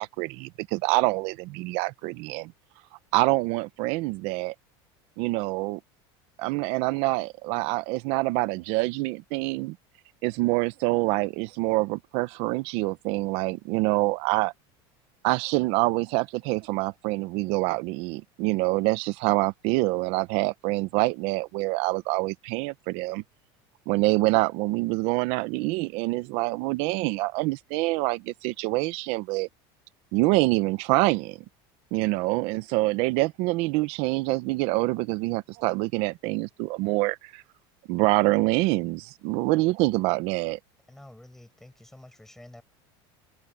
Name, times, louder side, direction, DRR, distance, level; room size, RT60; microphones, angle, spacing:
voice 1, 0.0-2.5 3.1-4.5 5.2-5.8 6.4-9.8 10.2-14.5 15.2-23.2 23.9-29.5 30.1-31.4 31.9-37.4 37.9-40.6, right 21 dB, 50° right, 0.8 m, -26 dB
voice 2, 40.9-42.6, left 1 dB, 5° left, 7.6 m, -49 dB
open air
cardioid pair, 170°, 12 cm